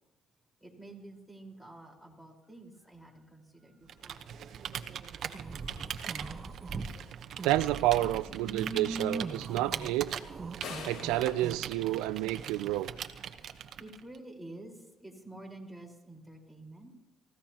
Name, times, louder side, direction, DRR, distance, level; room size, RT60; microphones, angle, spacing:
voice 1, 0.6-4.4 12.3-16.9, right 2 dB, ahead, 0 dB, 4.6 m, -50 dB
Computer keyboard, 3.9-14.2, right 9 dB, 60° right, 1.0 m, -41 dB
sound 1, 5.3-6.9 7.3-11.6, right 3 dB, 30° right, 1.3 m, -40 dB
voice 2, 7.4-10.1 10.8-12.9, right 16 dB, 90° right, 15 dB, 0.4 m, -29 dB
sound 2, 10.6-12.8, left 5 dB, 65° left, 3.8 m, -45 dB
29.5 x 15.5 x 3.0 m, 1.0 s
cardioid pair, 90°, 0 cm